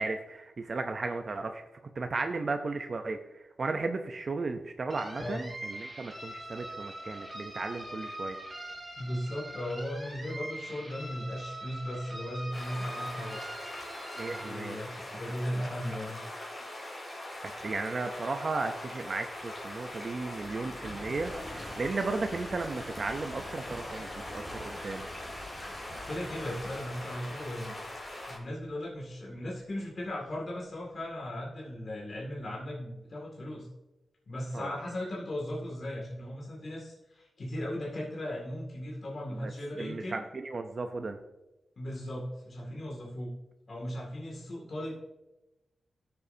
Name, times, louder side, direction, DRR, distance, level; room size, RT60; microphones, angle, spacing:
voice 1, 0.0-1.6 2.0-3.2 3.6-8.4 14.2-14.8 15.1-15.2 17.6-25.1 34.5-34.7 39.4-39.5 39.8-41.2, right 3 dB, 45° right, 6 dB, 0.6 m, -35 dB
sound 1, 4.9-14.5, right 1 dB, 20° right, 3.1 m, -43 dB
voice 2, 9.0-13.4 14.4-16.2 21.5-21.8 23.7-23.8 26.0-27.8 28.3-33.7 34.3-40.1 41.8-43.3 43.7-44.9, left 1 dB, 45° left, -3 dB, 2.2 m, -37 dB
sound 2, 12.5-28.4, left 1 dB, 25° left, 3.3 m, -42 dB
sound 3, 19.3-31.0, equal, ahead, 1.7 m, -47 dB
17.0 x 7.0 x 2.7 m, 0.98 s
wide cardioid pair, 135°, 0 cm